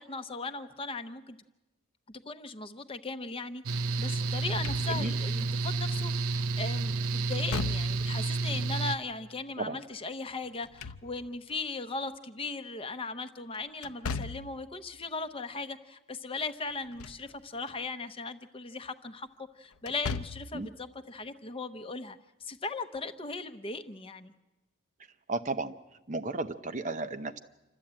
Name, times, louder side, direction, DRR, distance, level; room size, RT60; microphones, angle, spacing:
voice 1, 0.0-1.4 2.1-19.3 19.6-24.3, left 3 dB, 25° left, 9 dB, 0.8 m, -38 dB
Mechanical fan, 3.7-9.0, right 3 dB, 90° right, 0.7 m, -30 dB
Slam / Thump thud, 4.4-5.3 7.3-8.2 10.5-11.5 13.8-14.6 16.7-17.3 17.7-17.8 19.8-20.6, left 5 dB, 90° left, 0.7 m, -38 dB
voice 2, 25.3-25.8 26.1-27.4, right 3 dB, 35° right, 9 dB, 0.8 m, -34 dB
27.5 x 13.0 x 8.8 m, 1.0 s
head